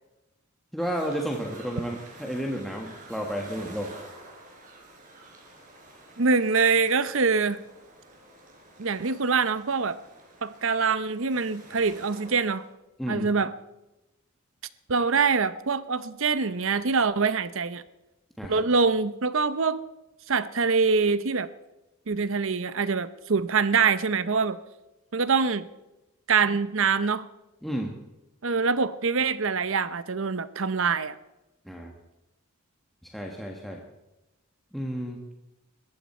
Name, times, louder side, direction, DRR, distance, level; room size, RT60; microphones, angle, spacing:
voice 1, 0.7-3.9 13.0-13.3 18.4-18.6 27.6-28.0 31.6-31.9 33.0-33.8 34.7-35.2, equal, ahead, 0 dB, 1.4 m, -32 dB
sound 1, 0.8-12.7, right 2 dB, 35° right, 4.4 m, -49 dB
voice 2, 6.2-7.6 8.8-10.0 10.4-12.6 13.1-13.5 14.9-17.8 18.5-19.8 20.3-21.5 22.1-24.6 25.1-25.7 26.3-27.3 28.4-31.2, right 5 dB, 60° right, 14 dB, 0.8 m, -24 dB
20.5 x 14.5 x 4.4 m, 1.0 s
head